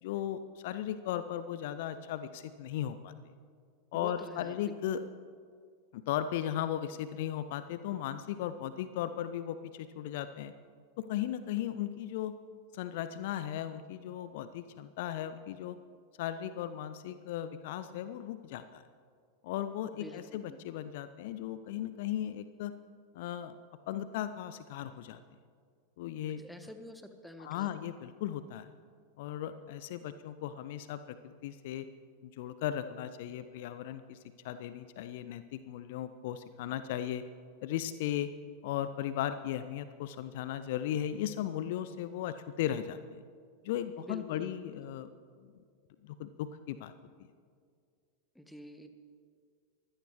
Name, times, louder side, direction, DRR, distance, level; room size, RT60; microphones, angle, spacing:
voice 1, 0.0-3.1 3.9-5.0 5.9-10.5 11.0-12.3 12.7-15.8 16.2-18.8 19.4-22.7 23.1-23.6 23.9-25.2 26.0-26.4 27.4-28.7 29.2-31.9 32.2-34.2 34.4-37.2 37.6-38.3 38.6-43.2 43.6-45.1 46.0-46.9, left 11 dB, 50° left, 12 dB, 0.5 m, -36 dB
voice 2, 3.9-5.0 19.9-20.2 20.5-20.6 26.4-27.7 44.0-44.9 48.3-48.9, equal, ahead, 7 dB, 1.2 m, -48 dB
23.0 x 16.0 x 3.1 m, 2.1 s
figure-of-eight pair, 90°, 0 cm